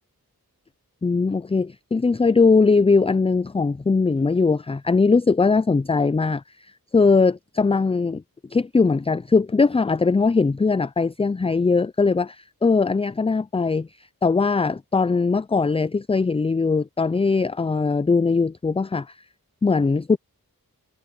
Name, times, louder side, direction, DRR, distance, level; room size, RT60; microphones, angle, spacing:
voice 1, 1.0-6.4 6.9-8.2 8.5-13.9 14.2-19.1 19.6-20.2, left 4 dB, 15° left, 0.3 m, -20 dB
wide cardioid pair, 50°, 36 cm